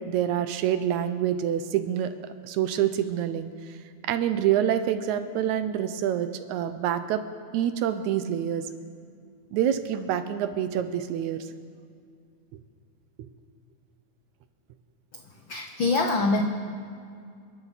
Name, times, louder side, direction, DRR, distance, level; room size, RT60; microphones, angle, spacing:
voice 1, 0.0-2.1 2.4-3.5 4.0-7.2 7.5-8.7 9.5-11.5, right 10 dB, 75° right, 10 dB, 2.0 m, -26 dB
voice 2, 15.5-16.4, left 3 dB, 90° left, 3 dB, 1.0 m, -24 dB
29.0 x 12.0 x 4.1 m, 2.3 s
omnidirectional pair, 3.6 m